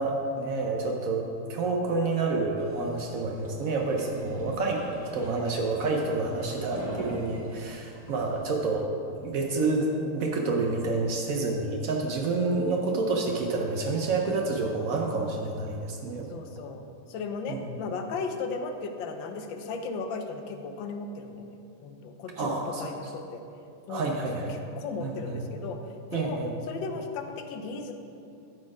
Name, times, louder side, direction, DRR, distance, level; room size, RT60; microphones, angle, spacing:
voice 1, 0.0-8.9 9.1-16.3 17.5-17.6 22.4-23.1 23.9-24.6 25.0-25.4 26.1-26.6, right 3 dB, 80° right, 1 dB, 0.7 m, -29 dB
sound 1, 2.6-8.5, equal, 25° right, 0.7 m, -42 dB
voice 2, 16.3-16.8 17.1-21.6 21.8-23.4 23.9-24.2 24.5-25.8 26.1-26.4 26.7-27.9, left 4 dB, 70° left, 5 dB, 1.3 m, -36 dB
12.5 x 4.3 x 4.7 m, 2.6 s
omnidirectional pair, 2.4 m